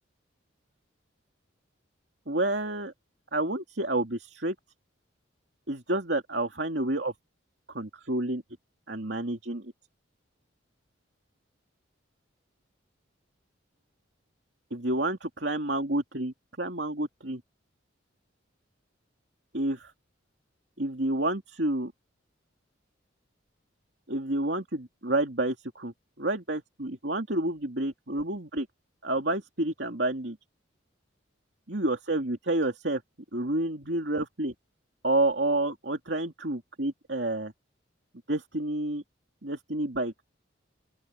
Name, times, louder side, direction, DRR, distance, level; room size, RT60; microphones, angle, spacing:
voice 1, 2.3-2.9 3.3-4.5 5.7-7.1 7.7-8.4 8.9-9.7 14.7-17.4 19.5-19.9 20.8-21.9 24.1-28.7 29.0-30.4 31.7-33.0 33.3-34.5 35.0-37.5 38.3-39.0 39.4-40.1, right 1 dB, 60° right, 2.8 m, -29 dB
open air
head